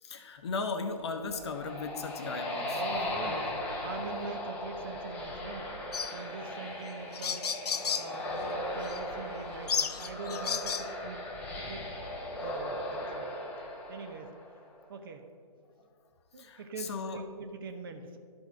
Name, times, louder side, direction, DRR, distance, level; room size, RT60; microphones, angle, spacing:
voice 1, 0.0-2.8 3.2-3.5 16.4-17.2, left 4 dB, 40° left, 7 dB, 0.8 m, -37 dB
sound 1, 1.1-14.7, left 1 dB, 5° left, 0.6 m, -38 dB
voice 2, 2.7-5.7 6.1-7.4 7.9-11.3 11.6-11.9 12.4-13.3 13.9-14.3 14.9-15.3 16.3-18.2, right 4 dB, 35° right, 6 dB, 0.6 m, -43 dB
sound 2, 5.9-6.2 6.9-7.0 7.1-8.1 8.8-9.0 9.7-10.9, left 7 dB, 70° left, 0.5 m, -33 dB
12.0 x 4.4 x 4.7 m, 2.1 s
figure-of-eight pair, 145°, 21 cm